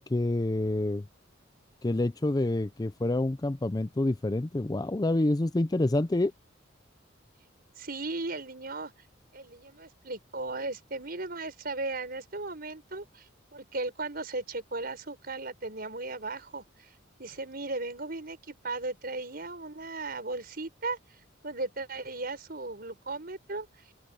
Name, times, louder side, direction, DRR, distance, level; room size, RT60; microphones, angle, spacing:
voice 1, 0.1-1.1 1.8-6.3, left 2 dB, 20° left, 0.4 m, -27 dB
voice 2, 7.8-8.9 9.3-16.9 17.2-21.0 21.4-23.7, right 3 dB, 50° right, 5.4 m, -36 dB
open air
head